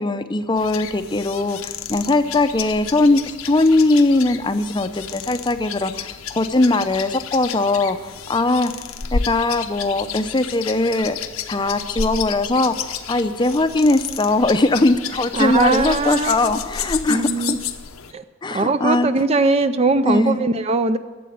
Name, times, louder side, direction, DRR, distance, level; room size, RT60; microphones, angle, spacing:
voice 1, 0.0-8.0 8.3-8.7 9.1-11.2 11.5-17.6 18.4-19.1 20.1-20.5, left 2 dB, 20° left, 9 dB, 0.6 m, -20 dB
sound 1, 0.6-18.1, left 7 dB, 85° left, 0.8 m, -31 dB
voice 2, 15.3-16.5 17.1-17.6 18.1-18.2 18.5-21.0, right 3 dB, 30° right, 11 dB, 0.4 m, -20 dB
11.5 x 7.6 x 9.3 m, 1.3 s
head